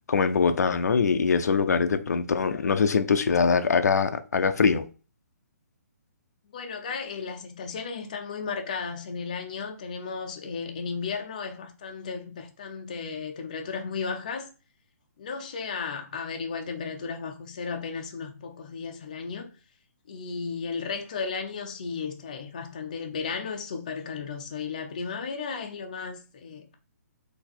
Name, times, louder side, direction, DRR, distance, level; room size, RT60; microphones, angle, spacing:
voice 1, 0.1-4.9, left 5 dB, 80° left, 0.5 m, -23 dB
voice 2, 6.5-14.5 15.2-19.5 20.1-26.7, left 5 dB, 25° left, 0.5 m, -34 dB
4.0 x 2.9 x 4.4 m
hypercardioid pair, 180°, 9 cm